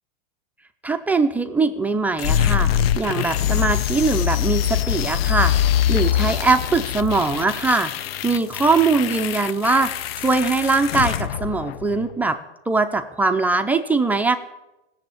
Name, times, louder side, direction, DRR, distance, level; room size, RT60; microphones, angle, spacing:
voice 1, 0.8-5.5 5.9-12.4 12.7-14.4, right 3 dB, 5° right, 6 dB, 0.4 m, -21 dB
sound 1, 2.2-12.2, left 10 dB, 75° left, 0.7 m, -23 dB
16.5 x 7.1 x 8.8 m, 0.99 s
supercardioid pair, 150°, 30 cm